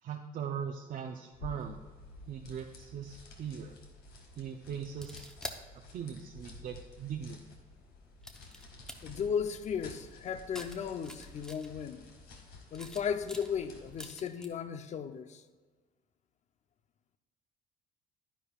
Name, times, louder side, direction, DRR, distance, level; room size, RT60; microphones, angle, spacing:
voice 1, 0.0-1.9 2.3-3.7 4.4-5.3 5.9-7.6, right 7 dB, 50° right, 0.6 m, -40 dB
sound 1, 1.3-14.2, left 2 dB, 70° left, 1.9 m, -52 dB
sound 2, 4.9-5.6 6.7-6.8 8.2-8.9 10.5-11.9 12.6-14.5, equal, 5° left, 0.9 m, -46 dB
voice 2, 9.0-12.1 12.7-15.4, left 7 dB, 45° left, 0.6 m, -35 dB
11.0 x 10.0 x 2.4 m
cardioid pair, 110°, 17 cm